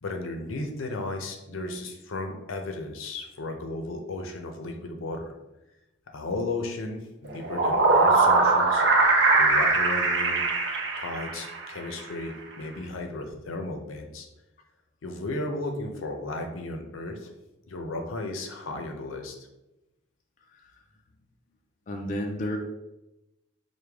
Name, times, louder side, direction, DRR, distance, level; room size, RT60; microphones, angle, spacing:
voice 1, 0.0-5.3 6.1-8.8 9.3-10.5 11.0-14.3 15.0-17.3 17.7-19.3, left 2 dB, 85° left, 4 dB, 0.6 m, -34 dB
sound 1, 7.3-11.7, right 3 dB, 55° right, 0.6 m, -21 dB
voice 2, 21.9-22.6, left 1 dB, 40° left, 2 dB, 0.3 m, -32 dB
4.8 x 2.2 x 3.4 m, 0.96 s
head